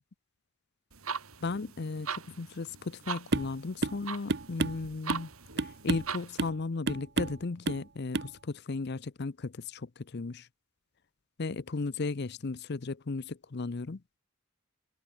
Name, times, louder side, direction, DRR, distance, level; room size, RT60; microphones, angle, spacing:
sound 1, 0.9-6.5, right 6 dB, 90° right, 4.8 m, -41 dB
voice 1, 1.4-5.3 5.6-10.5 11.4-14.0, left 3 dB, 50° left, 0.6 m, -35 dB
sound 2, 3.3-3.5 3.8-4.0 4.3-5.3 5.6-6.1 6.4-6.6 6.9-7.4 7.7-7.9 8.1-8.3, right 3 dB, 55° right, 0.9 m, -31 dB
head